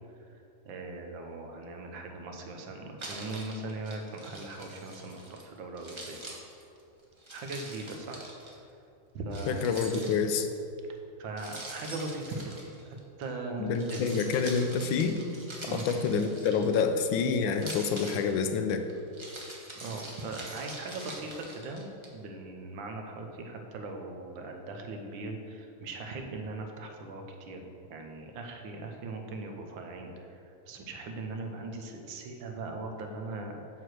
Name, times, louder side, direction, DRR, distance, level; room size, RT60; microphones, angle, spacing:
voice 1, 0.3-6.2 7.3-8.3 9.1-9.9 11.2-12.7 13.2-14.1 15.6-15.9 19.3-19.4 19.8-21.9 22.1-27.6 27.9-33.6, right 2 dB, 75° right, 3 dB, 1.6 m, -39 dB
Keys jangling, 3.0-5.4 5.8-8.5 9.3-10.5 11.4-13.2 13.7-17.0 17.5-22.1, right 1 dB, 25° right, 0.7 m, -44 dB
voice 2, 9.5-10.5 13.6-15.2 15.7-18.8, left 5 dB, 80° left, 7 dB, 1.4 m, -27 dB
7.8 x 4.7 x 6.3 m, 2.6 s
omnidirectional pair, 2.2 m